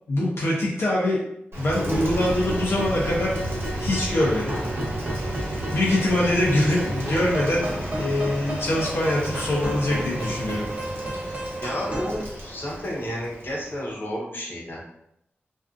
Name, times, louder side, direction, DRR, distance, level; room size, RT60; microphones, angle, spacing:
voice 1, 0.1-1.2 1.6-3.3 3.7-4.6 5.7-7.6 7.9-10.7, left 1 dB, 85° left, -5 dB, 0.5 m, -23 dB
Rain, 1.5-13.9, right 1 dB, 70° right, 0.9 m, -33 dB
sound 1, 1.9-12.2, right 1 dB, 30° right, 0.6 m, -32 dB
voice 2, 11.2-14.8, equal, 55° left, -4 dB, 0.8 m, -32 dB
2.5 x 2.3 x 2.4 m, 0.77 s
wide cardioid pair, 90°, 4 cm